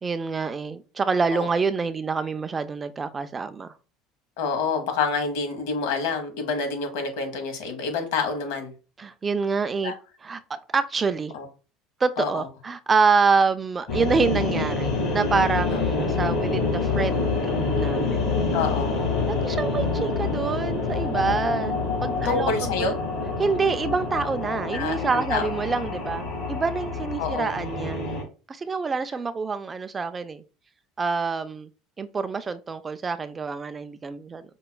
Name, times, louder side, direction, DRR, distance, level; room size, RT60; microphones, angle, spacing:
voice 1, 0.0-3.7 9.0-9.9 10.2-10.4 10.7-11.3 12.0-18.3 19.3-22.9 23.4-28.1 28.5-30.4 31.0-31.7 32.0-34.4, right 4 dB, 20° right, 0.3 m, -26 dB
voice 2, 4.4-8.7 9.8-9.9 11.3-11.5 12.2-12.5 15.7-15.8 18.5-19.0 22.2-23.0 24.7-25.6 27.2-27.5, left 5 dB, 80° left, 1.0 m, -27 dB
sound 1, 13.9-28.2, left 3 dB, 50° left, 1.9 m, -27 dB
5.3 x 2.2 x 2.2 m
supercardioid pair, 115°, 0 cm